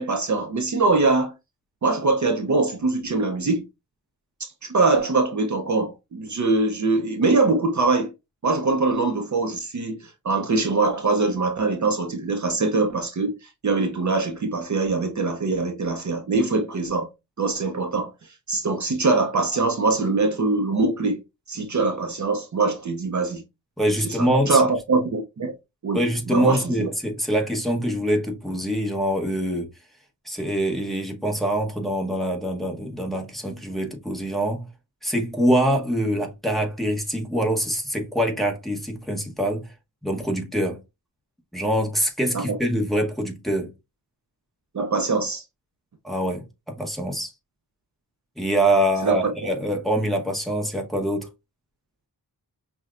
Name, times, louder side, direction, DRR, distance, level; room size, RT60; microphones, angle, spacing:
voice 1, 0.0-1.3 1.8-3.7 4.4-8.1 8.4-13.4 13.6-17.1 17.4-18.1 18.5-21.2 21.5-23.4 24.0-25.5 25.8-26.9 42.3-42.6 44.7-45.4 49.0-49.3, right 3 dB, 50° right, 0.6 m, -23 dB
voice 2, 23.8-24.7 25.9-29.7 30.2-34.7 35.0-39.7 40.0-40.8 41.5-43.7 46.0-47.3 48.4-51.3, equal, ahead, 1.0 m, -24 dB
5.6 x 2.2 x 2.4 m
wide cardioid pair, 100°, 38 cm